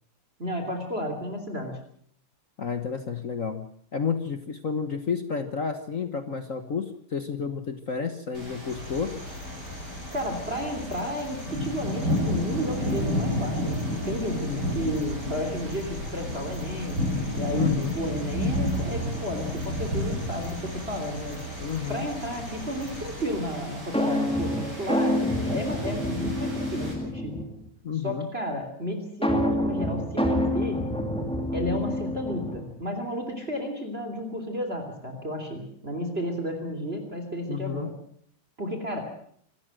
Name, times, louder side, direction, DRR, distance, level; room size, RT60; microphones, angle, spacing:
voice 1, 0.4-1.7 10.1-17.0 17.3-17.7 17.9-21.4 21.9-27.4 27.9-30.8 31.5-37.9 38.6-39.0, equal, 25° right, 5 dB, 3.4 m, -32 dB
voice 2, 2.6-9.1 14.4-14.7 17.5-18.0 21.6-22.1 27.8-28.3 37.5-37.9, left 6 dB, 45° left, 9 dB, 1.4 m, -31 dB
sound 1, 8.3-26.9, left 1 dB, 50° right, 8.5 m, -32 dB
sound 2, 8.7-23.2, left 3 dB, 75° left, 4.4 m, -41 dB
sound 3, 23.9-27.7 29.2-32.8, left 1 dB, ahead, 2.4 m, -27 dB
26.0 x 14.0 x 7.8 m, 0.64 s
omnidirectional pair, 2.4 m